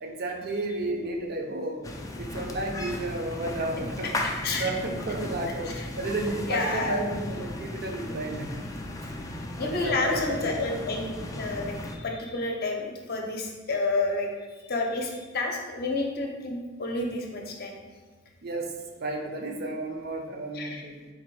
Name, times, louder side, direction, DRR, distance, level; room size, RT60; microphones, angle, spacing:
voice 1, 0.0-1.9 2.2-8.7 9.0-9.1 9.6-10.5 18.4-21.0, right 2 dB, 50° right, 2 dB, 0.5 m, -32 dB
sound 1, 1.8-12.0, left 1 dB, 15° left, 0.3 m, -36 dB
voice 2, 6.5-7.0 9.6-17.7 20.5-20.8, left 2 dB, 50° left, 1 dB, 0.6 m, -30 dB
3.8 x 2.5 x 4.5 m, 1.4 s
head